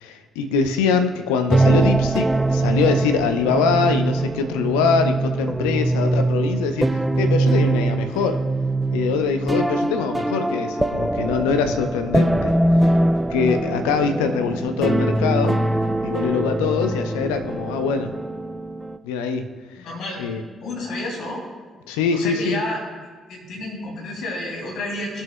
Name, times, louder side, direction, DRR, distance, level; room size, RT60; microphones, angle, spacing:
voice 1, 0.0-8.4 8.9-12.9 13.3-15.6 16.0-18.1 19.0-19.5 20.2-20.4 21.9-22.6, left 5 dB, 75° left, 8 dB, 0.6 m, -23 dB
sound 1, 1.5-19.0, right 2 dB, 10° right, 0.5 m, -22 dB
voice 2, 19.8-20.2 20.6-21.4 22.1-22.8 23.3-25.2, left 1 dB, 60° left, -2 dB, 2.7 m, -30 dB
18.0 x 6.4 x 2.2 m, 1.4 s
hypercardioid pair, 45°, 0 cm